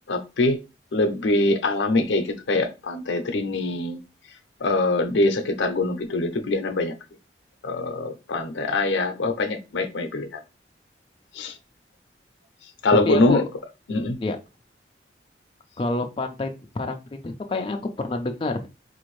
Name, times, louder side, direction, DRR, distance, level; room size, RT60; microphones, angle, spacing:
voice 1, 0.1-0.6 0.9-4.0 4.6-6.9 7.6-10.4 11.3-11.5 12.8-13.4 13.9-14.2, left 2 dB, 85° left, 0.6 m, -23 dB
voice 2, 13.0-13.4 14.2-14.4 15.8-17.0 17.2-18.7, left 2 dB, 30° left, 0.4 m, -28 dB
4.1 x 2.6 x 3.1 m
head